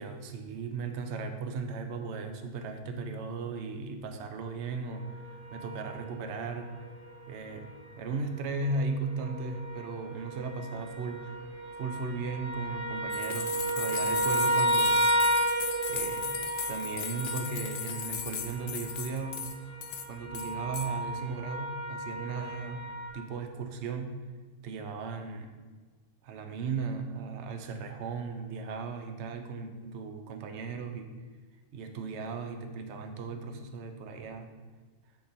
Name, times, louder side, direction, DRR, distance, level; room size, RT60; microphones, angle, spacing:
voice 1, 0.0-6.8 7.3-11.3 11.8-15.1 15.9-16.4 16.7-19.5 20.1-22.8 23.1-24.2 24.6-25.6 26.2-31.1 31.7-34.5, right 4 dB, 60° right, 6 dB, 1.0 m, -36 dB
sound 1, 4.9-7.7 8.2-23.1, right 1 dB, 20° right, 1.3 m, -33 dB
sound 2, 13.1-19.6 19.8-20.0 20.3-20.9, left 8 dB, 60° left, 0.7 m, -37 dB
10.0 x 4.0 x 4.3 m, 1.4 s
omnidirectional pair, 1.5 m